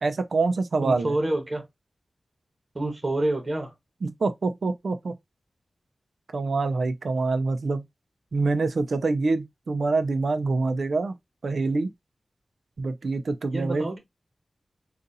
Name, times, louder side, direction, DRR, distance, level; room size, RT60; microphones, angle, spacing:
voice 1, 0.0-1.1 4.0-5.2 6.3-7.8 8.3-11.1 11.4-11.9 12.8-13.9, right 3 dB, 75° right, 0.5 m, -25 dB
voice 2, 0.8-1.7 2.7-3.7 13.5-14.0, right 1 dB, 40° right, 1.1 m, -27 dB
4.0 x 2.5 x 2.6 m
wide cardioid pair, 80°, 0 cm